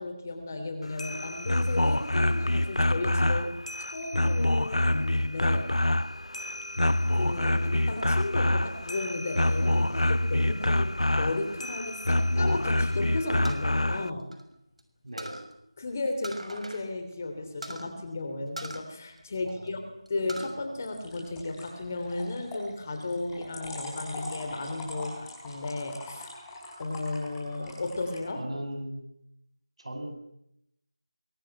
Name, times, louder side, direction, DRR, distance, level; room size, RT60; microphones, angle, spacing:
voice 1, 0.0-3.5 3.8-5.7 7.1-14.3 15.8-26.4 26.8-28.4, left 2 dB, 25° left, 6 dB, 3.3 m, -34 dB
sound 1, 0.8-14.1, left 1 dB, 85° left, 0.9 m, -26 dB
sound 2, 13.4-14.8 15.2-15.5 16.2-16.9 17.1-17.2 17.6-17.9 18.6-19.7 20.1-20.6 21.0-21.7, right 1 dB, 80° right, 6.5 m, -41 dB
voice 2, 15.0-15.4 19.4-19.8 28.3-29.1 29.8-30.2, right 1 dB, 55° right, 6 dB, 8.0 m, -38 dB
sound 3, 20.8-28.2, left 1 dB, 5° left, 4.7 m, -43 dB
23.5 x 23.0 x 8.9 m, 0.80 s
figure-of-eight pair, 170°, 3 cm